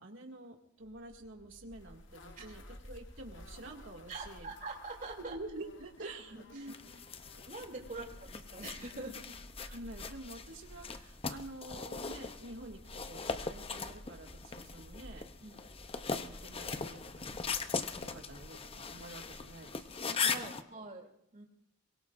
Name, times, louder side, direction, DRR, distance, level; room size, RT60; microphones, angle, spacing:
voice 1, 0.0-4.5 5.2-7.0 9.6-15.3 16.1-17.6 17.9-20.6, right 2 dB, 80° right, 1 dB, 2.4 m, -48 dB
Bark, 0.8-19.9, equal, 15° left, 4.6 m, -54 dB
sound 1, 1.7-9.1, left 3 dB, 70° left, 1.3 m, -59 dB
voice 2, 4.1-5.4 6.3-6.7 7.3-9.4 15.4-15.6 20.2-21.4, right 3 dB, 40° right, 0 dB, 3.1 m, -45 dB
sound 2, 6.7-20.6, left 5 dB, 30° left, 0.7 m, -40 dB
23.5 x 22.5 x 2.6 m, 0.73 s
head